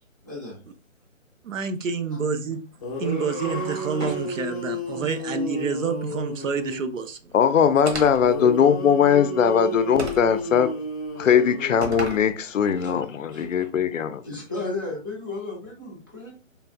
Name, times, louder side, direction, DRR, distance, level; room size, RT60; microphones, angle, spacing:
voice 1, 0.2-0.6 12.8-12.9 13.3-13.5 14.2-16.3, left 3 dB, 15° right, 0.5 m, -34 dB
voice 2, 1.4-2.6 3.0-7.3, right 5 dB, 70° right, 0.6 m, -28 dB
sound 1, 2.5-2.6 2.8-7.0 8.2-12.3, equal, 30° left, 0.6 m, -32 dB
sound 2, 2.9-5.0, left 1 dB, 90° right, 1.6 m, -38 dB
voice 3, 7.3-10.7 11.2-14.2, left 7 dB, 75° left, 0.5 m, -20 dB
sound 3, 7.9-8.3 10.0-10.4 11.8-12.3, right 2 dB, 55° right, 1.0 m, -32 dB
3.3 x 2.4 x 2.4 m
figure-of-eight pair, 155°, 39 cm